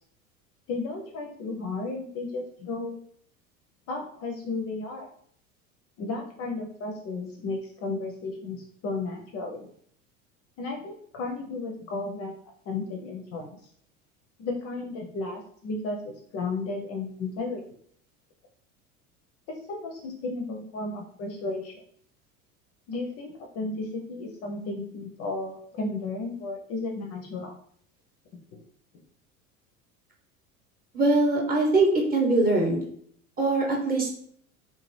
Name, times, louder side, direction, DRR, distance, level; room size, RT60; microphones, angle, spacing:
voice 1, 0.7-3.0 3.9-5.1 6.0-9.7 10.6-12.3 12.7-13.6 14.4-17.6 19.7-21.7 22.9-27.6, left 3 dB, 35° left, 1 dB, 0.5 m, -34 dB
voice 2, 30.9-32.8 33.4-34.1, right 2 dB, 20° right, -1 dB, 0.9 m, -22 dB
2.8 x 2.2 x 3.0 m, 0.63 s
figure-of-eight pair, 75°, 43 cm